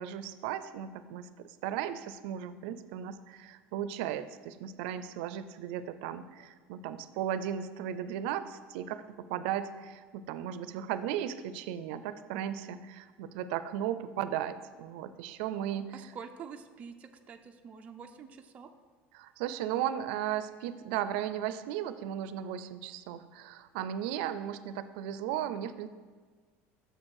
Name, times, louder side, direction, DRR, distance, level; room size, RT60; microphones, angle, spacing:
voice 1, 0.0-9.0 9.3-15.9 19.1-25.9, right 10 dB, 85° right, 12 dB, 0.4 m, -36 dB
voice 2, 15.9-18.7, right 6 dB, 25° right, 5 dB, 0.5 m, -47 dB
6.7 x 6.1 x 6.4 m, 1.5 s
cardioid pair, 165°, 5 cm